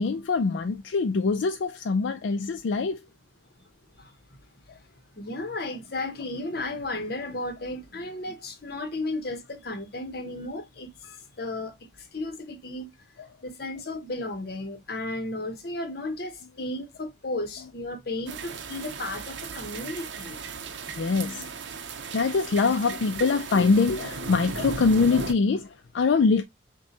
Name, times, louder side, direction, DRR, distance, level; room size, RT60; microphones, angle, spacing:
voice 1, 0.0-3.0 11.0-11.2 20.9-21.5 22.1-26.4, left 4 dB, 75° left, 0.4 m, -24 dB
voice 2, 5.2-10.9 11.4-11.8 12.1-12.9 13.4-20.4, left 2 dB, 55° left, 0.9 m, -34 dB
sound 1, 18.3-25.3, right 5 dB, 75° right, 0.6 m, -36 dB
6.0 x 2.2 x 2.7 m
head